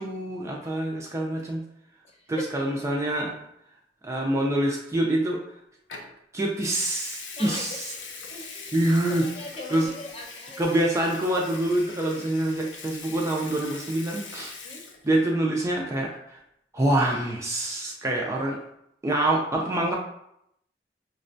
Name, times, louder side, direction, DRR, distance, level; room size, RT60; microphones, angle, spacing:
voice 1, 0.0-1.6 2.3-3.3 4.0-5.4 6.3-7.9 8.7-9.3 9.7-9.9 10.6-14.5 15.0-16.4 16.7-18.6 19.0-20.0, right 1 dB, 15° right, -1 dB, 0.4 m, -26 dB
Water tap faucet / Sink (filling or washing) / Liquid, 5.9-6.1 6.6-15.3 15.6-15.9, left 4 dB, 80° left, 0.5 m, -42 dB
voice 2, 7.3-7.8 8.3-8.8 9.1-10.8 14.6-14.8, left 2 dB, 35° left, -1 dB, 0.8 m, -39 dB
5.6 x 2.1 x 2.5 m, 0.78 s
head